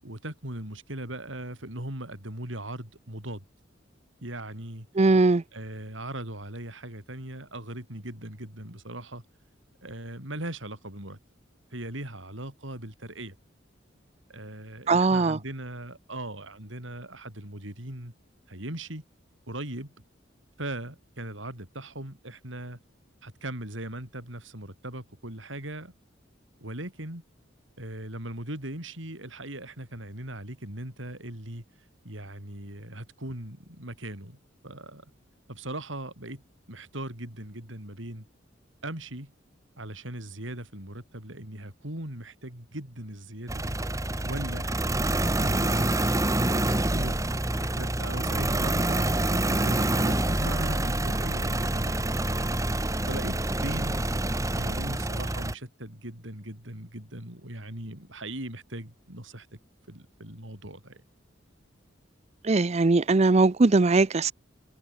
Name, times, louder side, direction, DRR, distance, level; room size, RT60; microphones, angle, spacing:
voice 1, 0.0-3.4 4.2-4.9 5.5-9.2 9.8-11.2 11.7-13.4 14.3-18.1 18.5-19.0 19.5-19.9 20.6-22.8 23.2-25.9 26.6-27.2 27.8-31.6 32.0-34.4 34.6-35.0 35.5-36.4 36.7-38.2 38.8-39.3 39.8-43.8 44.2-44.7 45.2-47.2 47.6-53.4 53.6-59.5 59.9-61.0, right 1 dB, 85° right, 6.6 m, -39 dB
voice 2, 5.0-5.4 14.9-15.4 62.4-64.3, right 3 dB, 35° right, 0.5 m, -20 dB
sound 1, 43.5-55.5, right 1 dB, 15° right, 1.6 m, -27 dB
head